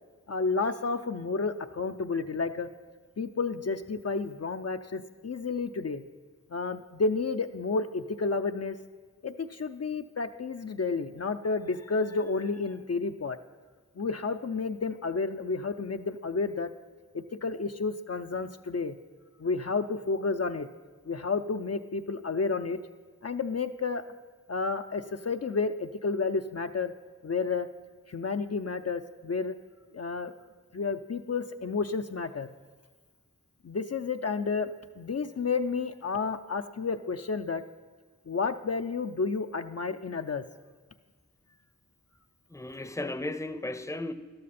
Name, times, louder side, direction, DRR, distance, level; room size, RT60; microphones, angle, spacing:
voice 1, 0.3-2.7 3.2-6.0 6.5-8.8 9.2-13.4 14.0-16.7 17.1-18.9 19.4-20.7 21.1-22.8 23.2-24.0 24.5-26.9 27.2-27.7 28.1-29.5 29.9-30.3 30.7-32.5 33.6-37.6 38.3-40.4, left 4 dB, 55° left, 0.5 m, -31 dB
voice 2, 42.5-44.1, left 2 dB, 10° left, 0.6 m, -35 dB
12.5 x 12.5 x 4.2 m
wide cardioid pair, 45°, 30 cm